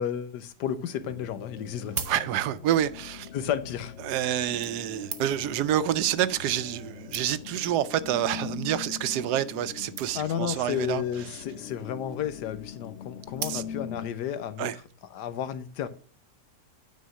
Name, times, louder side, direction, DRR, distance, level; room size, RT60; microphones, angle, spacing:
voice 1, 0.0-2.0 3.3-3.9 10.1-14.7 15.1-15.9, left 9 dB, 90° left, 1.4 m, -32 dB
sound 1, 1.0-14.1, left 7 dB, 65° left, 0.7 m, -42 dB
sound 2, 1.6-2.7 3.6-3.8 4.6-5.6 6.4-6.5 6.8-6.9 7.1-7.6 8.3-8.6 8.9-9.0 9.2-9.3 9.5-9.6 10.0-10.4 11.4-11.9 13.3-14.0 14.6-14.7, right 7 dB, 55° right, 1.0 m, -39 dB
voice 2, 2.1-3.3 4.0-11.0 11.3-11.4 13.5-13.6 14.6-14.7, right 11 dB, 80° right, 1.1 m, -28 dB
9.2 x 4.2 x 6.3 m
omnidirectional pair, 1.8 m